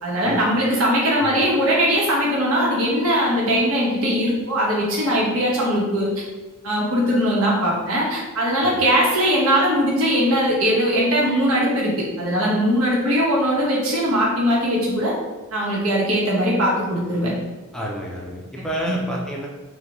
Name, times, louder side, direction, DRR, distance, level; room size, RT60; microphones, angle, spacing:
voice 1, 0.0-6.2 6.6-15.1 15.5-17.3 18.9-19.0, equal, 80° right, -4 dB, 1.0 m, -20 dB
voice 2, 17.7-19.5, equal, 5° left, -3 dB, 0.4 m, -30 dB
3.9 x 2.2 x 2.9 m, 1.2 s
head